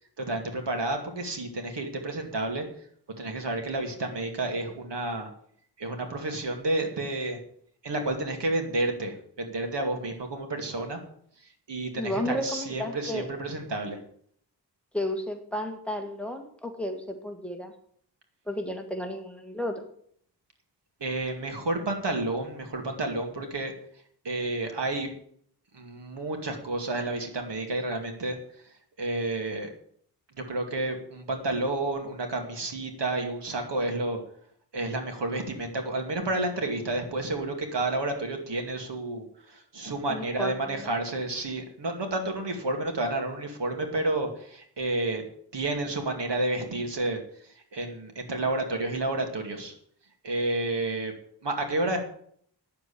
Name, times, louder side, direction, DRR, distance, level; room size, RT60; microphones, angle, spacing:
voice 1, 0.2-2.6 3.2-5.3 5.8-7.4 7.8-11.0 11.4-14.0 21.0-23.7 24.2-25.1 25.7-28.4 29.0-29.7 30.5-34.2 34.7-45.2 45.5-49.7 50.2-51.1 51.4-52.0, right 2 dB, 80° right, 4 dB, 2.4 m, -30 dB
voice 2, 12.0-13.3 14.9-17.7 18.5-19.8 40.1-40.9, left 1 dB, 5° left, 4 dB, 1.8 m, -33 dB
9.4 x 7.5 x 8.5 m, 0.62 s
wide cardioid pair, 105°, 41 cm